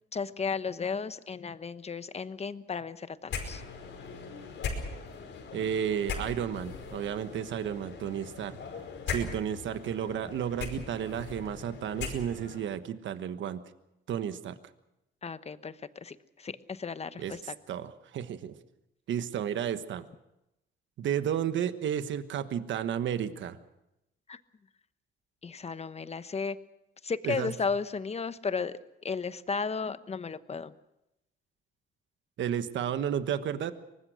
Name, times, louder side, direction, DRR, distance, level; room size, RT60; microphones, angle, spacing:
voice 1, 0.1-3.6 15.2-17.5 24.3-24.4 25.4-26.6 27.0-30.7, left 5 dB, 30° left, 13 dB, 1.0 m, -34 dB
sound 1, 3.3-12.6, left 5 dB, 75° left, 5.1 m, -39 dB
voice 2, 5.5-8.6 9.1-13.6 14.1-14.6 17.2-18.6 19.1-20.1 21.0-23.6 27.2-27.5 32.4-33.7, right 9 dB, 70° right, 11 dB, 1.3 m, -32 dB
24.0 x 19.5 x 6.3 m, 0.89 s
cardioid pair, 90°, 20 cm